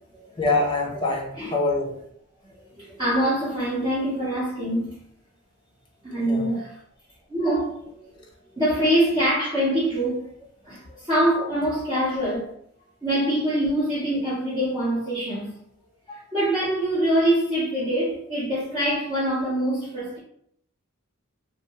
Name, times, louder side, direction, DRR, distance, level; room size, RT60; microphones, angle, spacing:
voice 1, 0.4-1.9 6.3-6.7, left 2 dB, 20° left, 0.4 m, -25 dB
voice 2, 2.4-4.9 6.0-6.7 7.3-8.2 8.6-10.3 10.6-12.5 13.0-15.5 16.1-20.2, right 1 dB, 20° right, 0.7 m, -24 dB
2.6 x 2.1 x 2.8 m
head